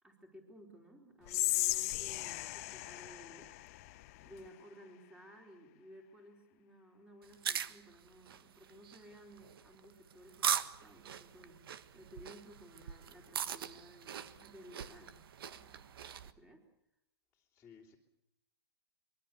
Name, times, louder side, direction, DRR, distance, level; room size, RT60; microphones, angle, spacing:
voice 1, 0.0-3.5 4.2-11.7 11.9-15.2 15.5-15.8 16.2-16.7, equal, 5° right, 3 dB, 4.4 m, -57 dB
Whispering, 1.3-4.5, left 19 dB, 35° left, 1.0 m, -36 dB
sound 1, 7.2-16.3, right 8 dB, 60° right, 1.6 m, -41 dB
voice 2, 17.3-18.0, left 6 dB, 10° left, -7 dB, 3.2 m, -59 dB
24.0 x 23.0 x 7.1 m, 0.80 s
hypercardioid pair, 150°, 13 cm